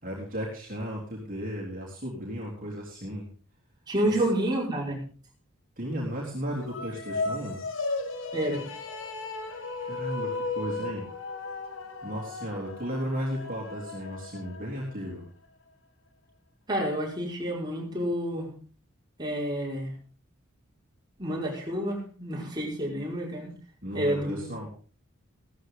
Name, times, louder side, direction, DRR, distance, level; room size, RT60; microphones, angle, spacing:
voice 1, 0.0-3.3 4.1-4.3 5.8-7.6 9.8-11.0 12.0-15.2 23.8-24.7, equal, 40° right, -3 dB, 3.6 m, -35 dB
voice 2, 3.9-5.0 8.3-8.6 16.7-18.6 19.2-19.9 21.2-23.5 23.9-24.5, right 1 dB, 20° right, -4 dB, 5.3 m, -29 dB
sound 1, 6.6-15.1, left 3 dB, 65° left, 1.7 m, -35 dB
16.5 x 13.5 x 3.9 m, 0.40 s
head